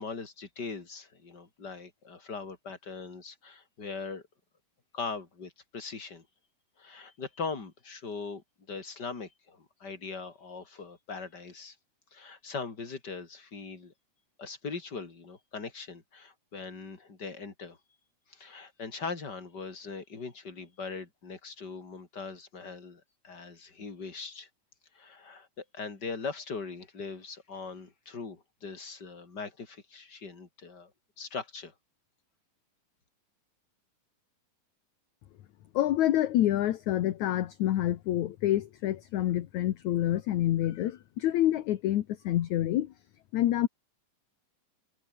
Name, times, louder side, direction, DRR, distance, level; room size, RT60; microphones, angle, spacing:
voice 1, 0.0-4.2 4.9-6.2 6.8-11.8 12.1-13.9 14.4-17.8 18.3-24.5 25.0-30.9 31.2-31.7, left 4 dB, 30° left, 4.1 m, -40 dB
voice 2, 35.7-42.9 43.3-43.7, left 13 dB, 65° left, 2.2 m, -27 dB
omnidirectional pair, 4.1 m